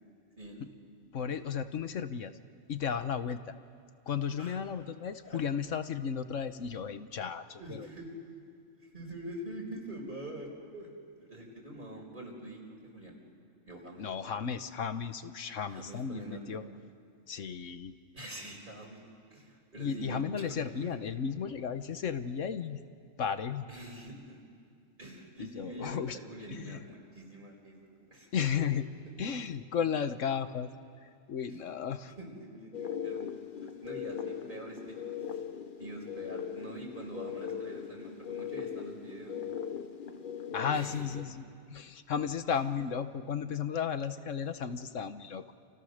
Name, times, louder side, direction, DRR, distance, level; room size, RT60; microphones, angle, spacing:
voice 1, 1.1-2.3 2.7-3.4 4.1-7.9 14.0-16.6 17.3-18.0 19.8-22.8 23.2-23.7 25.4-26.2 26.5-26.8 28.3-28.9 29.2-30.7 31.0-32.1 40.5-45.5, left 7 dB, 70° left, 10 dB, 1.4 m, -34 dB
voice 2, 7.6-8.2 8.9-10.9 11.2-13.2 13.7-14.3 15.7-16.6 18.1-19.0 19.3-20.9 23.7-24.4 25.0-29.0 29.7-29.8 31.5-31.6 32.1-33.3 33.6-35.4 35.8-39.4 40.7-41.1, right 1 dB, 40° right, 0 dB, 5.2 m, -45 dB
sound 1, 32.7-41.2, left 8 dB, 40° left, 1.2 m, -40 dB
29.5 x 29.0 x 6.6 m, 2.3 s
omnidirectional pair, 1.3 m